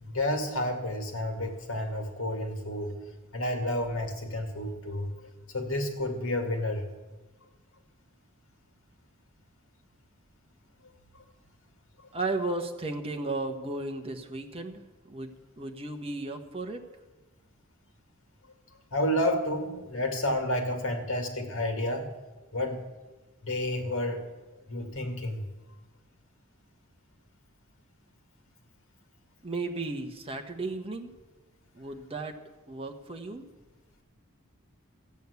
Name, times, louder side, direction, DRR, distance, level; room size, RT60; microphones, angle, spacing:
voice 1, 0.0-2.9 3.3-5.1 5.5-6.8 11.1-11.2 12.0-12.1 18.9-22.1 22.5-22.8 23.4-24.2 24.7-25.4, left 1 dB, 65° left, 4 dB, 2.2 m, -30 dB
voice 2, 12.1-16.8 29.4-31.1 31.7-32.4 32.7-33.5, right 2 dB, 25° right, 4 dB, 1.3 m, -35 dB
14.0 x 9.1 x 8.2 m, 1.2 s
head